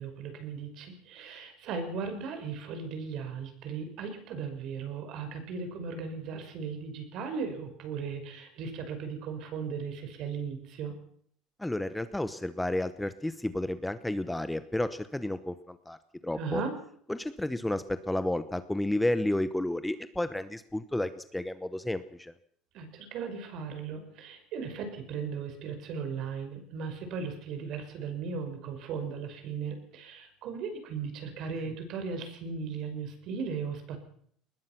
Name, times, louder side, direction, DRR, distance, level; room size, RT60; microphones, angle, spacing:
voice 1, 0.0-11.0 16.3-16.7 22.7-34.0, right 5 dB, 50° right, 7 dB, 5.5 m, -37 dB
voice 2, 11.6-16.0 16.2-16.6 17.1-22.3, left 1 dB, 5° left, 12 dB, 0.9 m, -31 dB
21.5 x 20.0 x 6.0 m, 0.64 s
cardioid pair, 150°, 0 cm